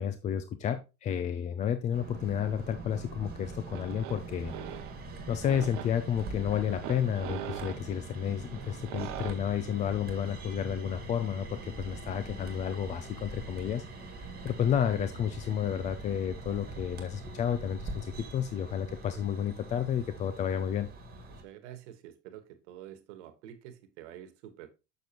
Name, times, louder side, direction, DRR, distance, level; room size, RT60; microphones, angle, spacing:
voice 1, 0.0-4.5 5.3-13.8 14.4-20.9, left 9 dB, 20° left, 10 dB, 0.4 m, -31 dB
sound 1, 1.9-21.4, right 2 dB, 25° right, 1.7 m, -43 dB
sound 2, 3.4-9.3, right 12 dB, 50° right, 0.9 m, -43 dB
voice 2, 21.4-24.7, right 11 dB, 65° right, 10 dB, 1.4 m, -48 dB
6.7 x 6.3 x 2.9 m, 0.27 s
hypercardioid pair, 110°, 38 cm